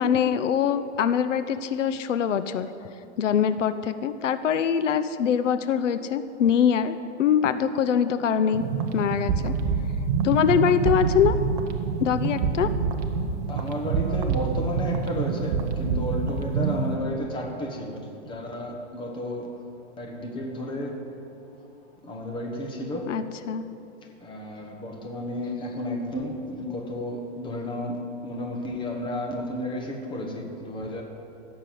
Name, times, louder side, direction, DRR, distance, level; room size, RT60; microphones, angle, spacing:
voice 1, 0.0-2.7 3.2-8.6 8.9-9.5 10.2-11.4 12.0-12.7 23.1-23.6, left 8 dB, 80° left, 11 dB, 0.8 m, -23 dB
sound 1, 8.5-17.0, right 5 dB, 30° right, 0.9 m, -26 dB
voice 2, 13.5-19.5 20.0-21.0 22.0-23.1 24.2-31.0, left 1 dB, 15° left, 2 dB, 1.3 m, -32 dB
16.0 x 6.8 x 7.7 m, 2.9 s
hypercardioid pair, 155°, 36 cm